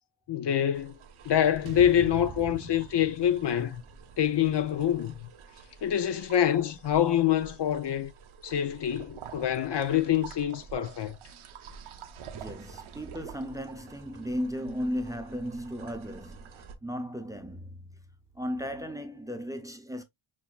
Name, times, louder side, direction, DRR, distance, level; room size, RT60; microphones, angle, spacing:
voice 1, 0.3-1.0 1.2-3.8 4.2-5.1 5.8-8.1 8.4-11.2, left 10 dB, 55° left, 0.6 m, -26 dB
sound 1, 0.7-16.7, right 6 dB, 75° right, 0.9 m, -48 dB
sound 2, 1.7-5.9, right 7 dB, 50° right, 0.8 m, -44 dB
voice 2, 12.3-18.0 18.3-20.0, equal, 5° right, 0.6 m, -36 dB
6.3 x 2.7 x 2.3 m
cardioid pair, 105°, 49 cm